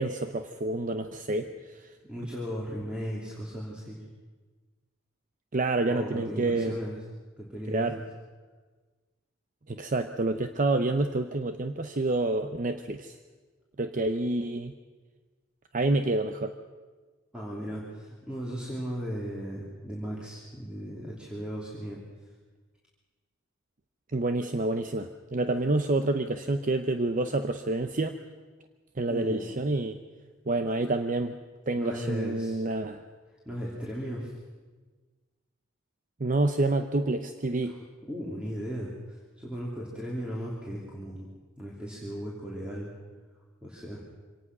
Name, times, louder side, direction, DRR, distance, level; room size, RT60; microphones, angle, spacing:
voice 1, 0.0-1.9 5.5-6.8 7.7-8.0 9.7-13.2 13.8-14.7 15.7-16.5 24.1-28.2 29.0-30.0 30.5-31.4 31.7-33.0 36.2-37.8, right 2 dB, 40° right, 8 dB, 0.8 m, -28 dB
voice 2, 2.1-4.0 5.9-7.0 7.4-8.0 17.3-22.0 29.1-29.5 31.8-32.6 33.4-34.3 37.7-41.3 41.6-42.9 43.6-44.0, equal, 5° right, -5 dB, 3.1 m, -36 dB
25.5 x 18.0 x 6.1 m, 1.4 s
head